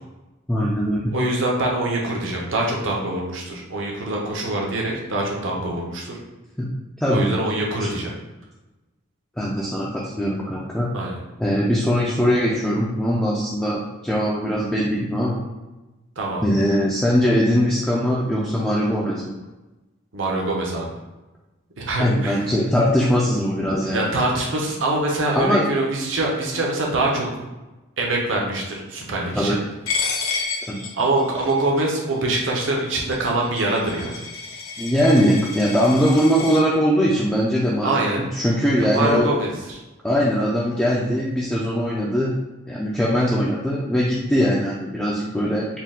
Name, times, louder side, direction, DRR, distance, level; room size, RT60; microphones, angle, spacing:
voice 1, 0.5-1.1 6.6-6.7 7.0-7.3 9.4-10.9 11.4-15.4 16.4-19.3 22.0-24.1 25.3-25.6 29.3-29.6 30.7-30.8 34.8-38.0 38.3-39.3 40.0-42.4 42.7-45.7, equal, 5° left, -6 dB, 0.4 m, -21 dB
voice 2, 1.1-6.2 7.1-8.1 10.9-11.2 16.2-16.4 20.1-21.0 21.8-22.5 23.8-27.3 28.0-29.6 30.9-34.3 37.8-38.2 38.8-39.8, right 2 dB, 65° right, -1 dB, 0.8 m, -24 dB
Coin (dropping), 29.9-36.6, left 4 dB, 85° left, 0.9 m, -31 dB
4.3 x 2.3 x 3.7 m, 1.1 s
head